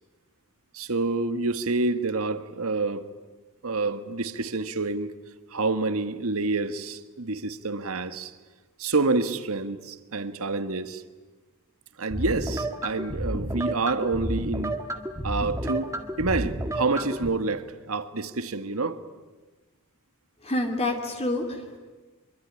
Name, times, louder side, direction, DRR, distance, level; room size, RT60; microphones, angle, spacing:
voice 1, 0.7-3.1 3.6-5.1 5.5-8.3 8.8-11.0 12.0-14.8 15.2-15.9 16.2-19.0, right 3 dB, 75° right, 11 dB, 1.5 m, -28 dB
sound 1, 12.1-17.3, right 1 dB, 15° right, 1.8 m, -31 dB
voice 2, 20.4-21.8, left 1 dB, 30° left, 4 dB, 2.5 m, -28 dB
24.5 x 24.0 x 9.8 m, 1.3 s
head